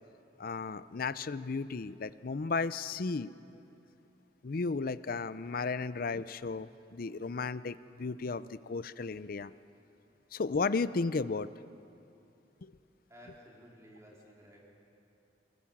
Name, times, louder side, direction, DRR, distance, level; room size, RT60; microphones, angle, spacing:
voice 1, 0.4-3.3 4.4-9.5 10.3-11.5 12.6-12.7, left 4 dB, 50° left, 15 dB, 0.5 m, -34 dB
voice 2, 13.1-14.6, equal, 15° right, -4 dB, 4.1 m, -54 dB
23.0 x 20.0 x 7.3 m, 2.8 s
head